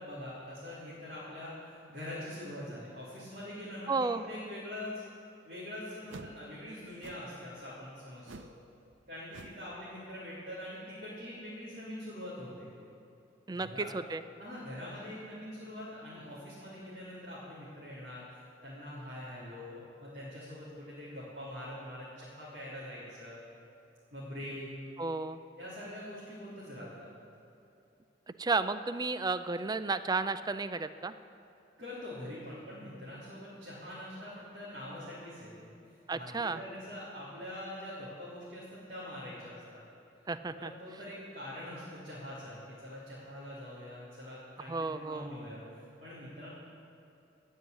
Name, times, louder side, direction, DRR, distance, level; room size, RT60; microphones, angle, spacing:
voice 1, 0.0-5.0 5.4-8.5 9.1-12.7 13.5-13.9 14.3-23.4 24.1-24.7 25.6-27.1 31.8-35.7 36.1-39.8 40.5-46.5, left 1 dB, 50° right, -10 dB, 3.3 m, -44 dB
voice 2, 3.9-4.2 13.5-14.2 25.0-25.4 28.4-31.1 36.1-36.6 40.3-40.7 44.7-45.3, right 3 dB, 20° right, 12 dB, 0.4 m, -33 dB
sound 1, 6.1-6.4 7.0-7.3 8.3-8.6 8.9-9.0 9.3-9.6, right 3 dB, 80° right, 0.6 m, -48 dB
15.5 x 5.5 x 9.8 m, 2.8 s
head